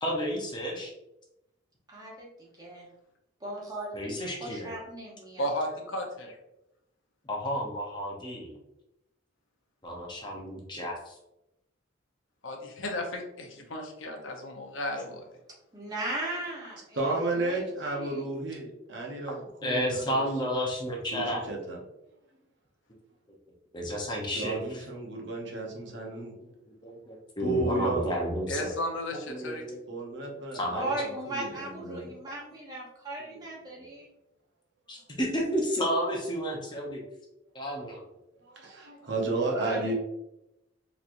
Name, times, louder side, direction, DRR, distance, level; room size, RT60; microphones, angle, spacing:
voice 1, 0.0-0.9 3.9-4.8 7.2-8.6 9.8-11.2 19.6-21.4 23.7-24.9 25.9-26.5 26.8-28.7 29.1-29.8 30.5-30.8 31.8-32.0 33.2-33.4 33.8-33.9 34.9-37.0 37.5-38.0, equal, 20° left, -1 dB, 0.7 m, -32 dB
voice 2, 1.9-2.9 3.4-3.9 4.4-5.4 15.7-17.6 18.0-18.3 30.7-34.1 39.5-39.9, right 1 dB, 20° right, -4 dB, 0.9 m, -37 dB
voice 3, 5.4-6.4 12.4-15.2 28.5-29.6, left 1 dB, 75° left, 3 dB, 0.7 m, -34 dB
voice 4, 16.9-20.2 21.1-21.8 24.3-26.3 27.4-28.1 29.9-32.1 38.4-39.9, right 2 dB, 60° right, -1 dB, 0.8 m, -33 dB
4.1 x 3.0 x 2.5 m, 0.88 s
head